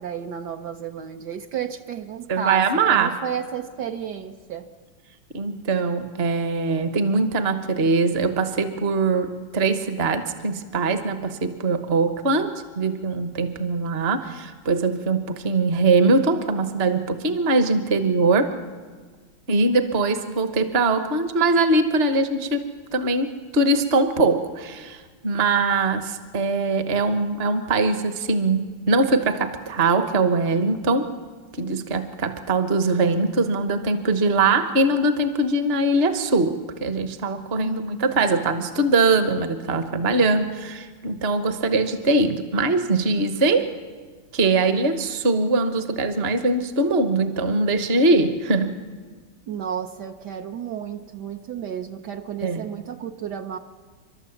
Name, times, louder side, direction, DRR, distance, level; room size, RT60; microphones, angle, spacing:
voice 1, 0.0-4.6 37.6-38.2 49.5-53.6, right 8 dB, 65° right, 5 dB, 1.3 m, -32 dB
voice 2, 2.3-3.1 5.3-18.5 19.5-22.6 22.9-23.3 23.5-31.0 31.6-43.7 44.3-48.8 52.4-52.6, right 3 dB, 40° right, 8 dB, 1.2 m, -22 dB
30.0 x 12.5 x 7.2 m, 1.5 s
omnidirectional pair, 2.1 m